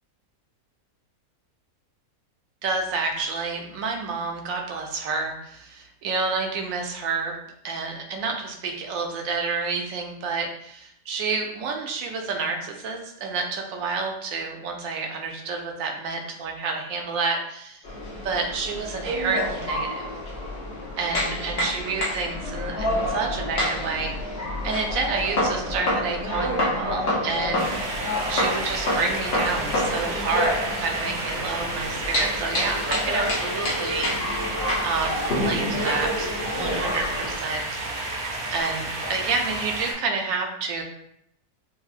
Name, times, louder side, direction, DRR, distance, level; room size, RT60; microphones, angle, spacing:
voice 1, 2.6-7.3 7.6-17.8 18.2-20.1 21.0-27.7 28.3-34.1 34.8-37.6 37.9-40.8, right 4 dB, 70° right, 3 dB, 1.0 m, -29 dB
sound 1, 17.8-37.4, left 1 dB, 50° left, 0.9 m, -28 dB
sound 2, 27.6-39.9, right 2 dB, 50° right, 0.7 m, -31 dB
5.5 x 2.0 x 2.4 m, 0.76 s
omnidirectional pair, 1.6 m